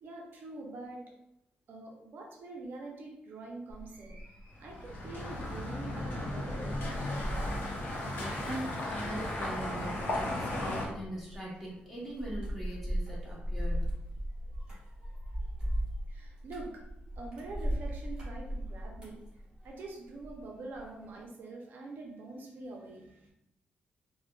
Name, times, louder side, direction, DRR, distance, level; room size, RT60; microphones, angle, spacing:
voice 1, 0.0-1.1 1.7-4.2 4.6-7.3 16.1-16.8 17.2-19.2 19.6-23.3, right 2 dB, 65° right, 0 dB, 0.5 m, -45 dB
sound 1, 3.7-20.4 20.7-21.2, equal, 25° right, 1.4 m, -38 dB
sound 2, 4.6-10.9, left 1 dB, 60° left, 0.6 m, -35 dB
voice 2, 8.0-13.9, right 1 dB, ahead, -6 dB, 1.0 m, -41 dB
3.6 x 2.1 x 2.2 m, 0.83 s
cardioid pair, 135°, 4 cm